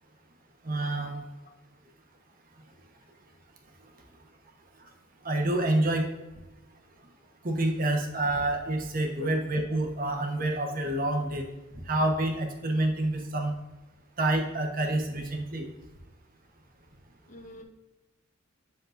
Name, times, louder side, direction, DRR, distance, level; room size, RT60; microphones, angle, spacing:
voice 1, 0.6-1.2 5.2-6.1 7.4-11.5 11.9-13.5 14.2-15.7, right 1 dB, 45° right, 2 dB, 1.1 m, -28 dB
voice 2, 17.3-17.6, left 2 dB, 40° left, 4 dB, 0.9 m, -43 dB
8.0 x 6.6 x 2.6 m, 1.0 s
head